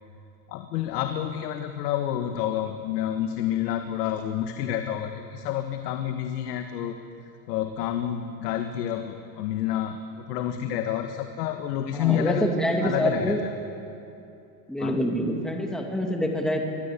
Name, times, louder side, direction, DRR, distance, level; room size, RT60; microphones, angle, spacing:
voice 1, 0.5-7.0 7.5-12.5 12.8-13.5 14.8-15.0, left 11 dB, 75° left, 6 dB, 1.8 m, -29 dB
voice 2, 11.9-13.4 14.7-16.6, equal, ahead, 1 dB, 2.4 m, -26 dB
23.5 x 22.5 x 8.6 m, 2.7 s
supercardioid pair, 150°, 48 cm